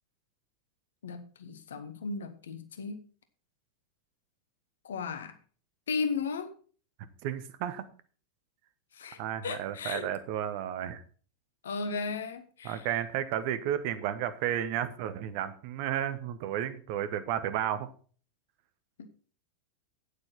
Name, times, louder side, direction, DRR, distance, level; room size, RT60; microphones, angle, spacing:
voice 1, 1.0-3.0 4.8-5.3 5.9-6.6 8.9-10.1 11.6-12.9 19.0-19.1, left 4 dB, 65° left, 10 dB, 1.2 m, -35 dB
voice 2, 7.2-7.8 9.2-11.0 12.6-17.9, right 10 dB, 45° right, 12 dB, 1.2 m, -32 dB
9.1 x 8.2 x 5.7 m, 0.41 s
figure-of-eight pair, 90°, 0 cm